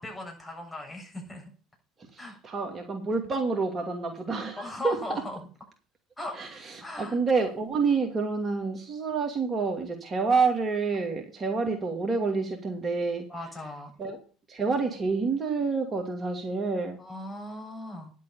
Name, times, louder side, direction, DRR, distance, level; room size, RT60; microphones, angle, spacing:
voice 1, 0.0-1.5 2.2-2.4 4.6-5.4 6.2-6.4 6.8-7.2 13.3-13.9 17.0-18.1, left 1 dB, 15° left, 1 dB, 7.2 m, -38 dB
voice 2, 2.0-5.0 6.3-13.3 14.0-14.2 14.5-17.0, right 4 dB, 35° right, 3 dB, 2.5 m, -28 dB
11.0 x 7.7 x 5.6 m, 0.38 s
hypercardioid pair, 70°, 0 cm